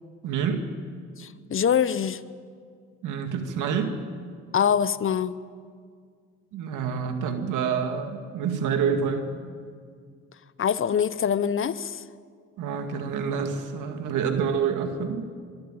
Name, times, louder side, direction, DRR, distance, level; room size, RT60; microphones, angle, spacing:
voice 1, 0.2-0.7 3.0-4.0 6.5-9.3 12.6-15.3, right 6 dB, 85° right, 6 dB, 2.1 m, -27 dB
voice 2, 1.2-2.2 4.5-5.3 10.6-12.0, left 8 dB, 45° left, 15 dB, 0.8 m, -24 dB
23.5 x 13.0 x 8.9 m, 2.1 s
cardioid pair, 90°, 30 cm